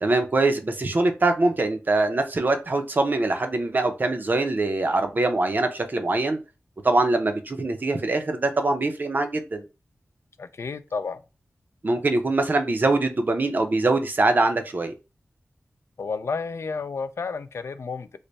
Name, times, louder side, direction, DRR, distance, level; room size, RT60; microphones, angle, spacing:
voice 1, 0.0-6.4 6.8-9.6 11.8-14.9, right 2 dB, 40° right, 0.6 m, -23 dB
voice 2, 10.4-11.2 16.0-18.2, left 4 dB, 65° left, 0.4 m, -31 dB
3.3 x 2.1 x 3.9 m
wide cardioid pair, 110°, 5 cm